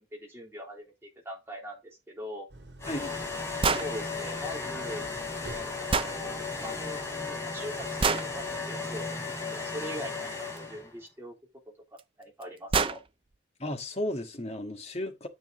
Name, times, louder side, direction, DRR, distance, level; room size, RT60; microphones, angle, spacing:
voice 1, 0.0-2.5 3.1-5.1 5.5-11.3 11.9-13.0, equal, 15° right, 3.6 m, -42 dB
Idling, 2.5-9.6, right 1 dB, 70° right, 4.6 m, -50 dB
sound 1, 2.8-10.9, left 4 dB, 15° left, 4.0 m, -35 dB
voice 2, 2.9-3.2 13.6-15.3, left 1 dB, 35° left, 1.7 m, -34 dB
sound 2, 3.6-3.9 5.9-6.2 8.0-8.3 10.6-10.7 12.0-12.1 12.4-12.5 12.7-13.0, right 4 dB, 30° right, 0.5 m, -26 dB
10.0 x 7.4 x 3.0 m
head